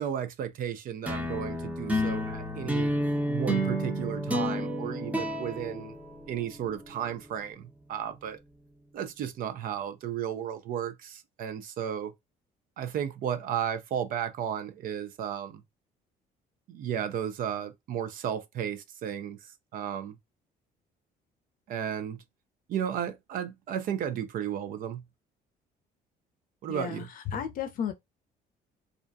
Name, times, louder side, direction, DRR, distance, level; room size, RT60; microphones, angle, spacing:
voice 1, 0.0-2.9 3.3-6.0 6.3-8.4 8.9-12.1 12.8-15.6 16.7-20.2 21.7-22.2 22.7-25.0 26.6-27.1, right 9 dB, 55° right, 0.4 m, -34 dB
sound 1, 1.1-6.7, equal, 10° right, 0.6 m, -30 dB
voice 2, 26.7-27.9, left 8 dB, 55° left, 0.5 m, -34 dB
2.4 x 2.1 x 2.5 m
cardioid pair, 110°, 17 cm